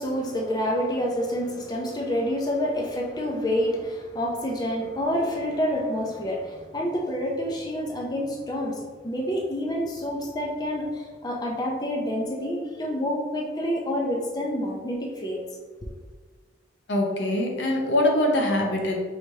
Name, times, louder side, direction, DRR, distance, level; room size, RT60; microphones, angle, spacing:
voice 1, 0.0-15.4, equal, 20° left, -2 dB, 0.5 m, -28 dB
voice 2, 16.9-19.0, left 1 dB, 80° left, 1 dB, 0.7 m, -23 dB
4.8 x 3.1 x 2.7 m, 1.5 s
head